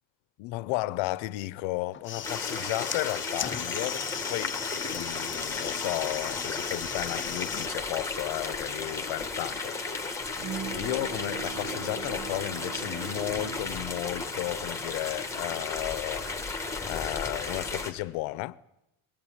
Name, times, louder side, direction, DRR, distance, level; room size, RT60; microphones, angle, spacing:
voice 1, 0.4-4.6 4.9-9.8 10.7-18.6, left 19 dB, 90° left, 0.8 m, -34 dB
sound 1, 1.9-7.7, left 9 dB, 25° left, 0.8 m, -37 dB
sound 2, 2.2-17.9, left 3 dB, 5° left, 1.8 m, -34 dB
Bowed string instrument, 10.4-15.8, right 8 dB, 50° right, 1.0 m, -41 dB
21.0 x 16.5 x 9.8 m
cardioid pair, 145°, 46 cm